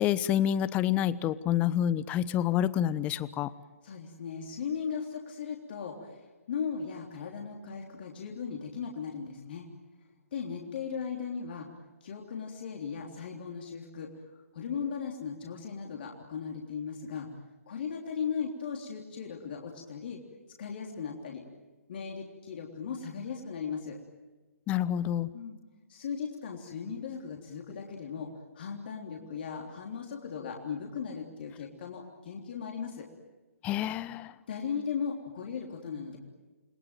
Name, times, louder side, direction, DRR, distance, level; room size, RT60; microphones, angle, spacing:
voice 1, 0.0-3.5 24.7-25.3 33.6-34.3, left 11 dB, 20° left, 17 dB, 0.9 m, -28 dB
voice 2, 3.8-6.2 6.5-9.7 10.3-11.7 12.0-17.3 17.7-20.2 20.6-21.4 21.9-24.0 25.3-25.6 25.9-33.1 34.5-36.2, left 6 dB, 45° left, 0 dB, 3.4 m, -37 dB
29.5 x 22.0 x 9.2 m, 1.2 s
figure-of-eight pair, 130°, 8 cm